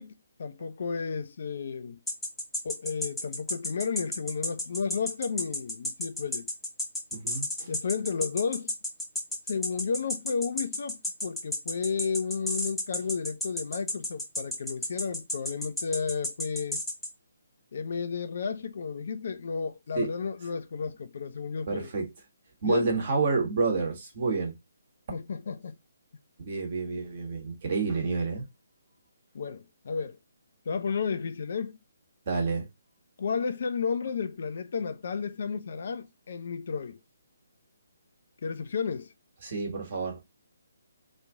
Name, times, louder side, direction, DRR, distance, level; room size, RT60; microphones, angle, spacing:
voice 1, 0.0-2.0 2.6-6.5 7.7-8.7 9.5-16.8 17.7-21.9 22.6-22.9 25.1-25.8 29.3-30.2 30.7-31.8 33.2-37.0 38.4-39.1, left 5 dB, 50° left, 0.4 m, -32 dB
sound 1, 2.1-17.1, left 1 dB, ahead, 0.6 m, -32 dB
voice 2, 7.1-7.7 19.9-20.1 21.7-22.1 22.6-24.5 26.4-28.5 32.3-32.7 39.4-40.2, right 4 dB, 40° right, 1.4 m, -29 dB
3.0 x 2.5 x 3.5 m
figure-of-eight pair, 140°, 0 cm